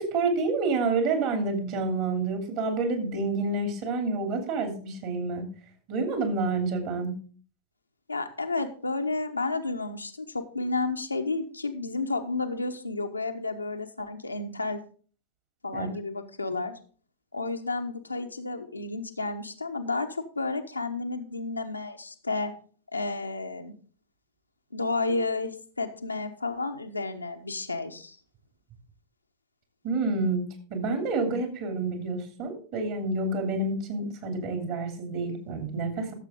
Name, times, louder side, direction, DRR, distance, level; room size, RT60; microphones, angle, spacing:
voice 1, 0.0-5.5 5.9-7.1 15.7-15.9 16.5-16.6 29.8-30.4 30.7-36.1, right 3 dB, 45° right, 5 dB, 2.9 m, -28 dB
voice 2, 8.1-14.8 15.6-16.7 17.3-22.5 22.9-23.7 24.7-28.2, left 3 dB, 80° left, 5 dB, 1.0 m, -31 dB
13.0 x 7.3 x 3.7 m, 0.42 s
figure-of-eight pair, 90°, 0 cm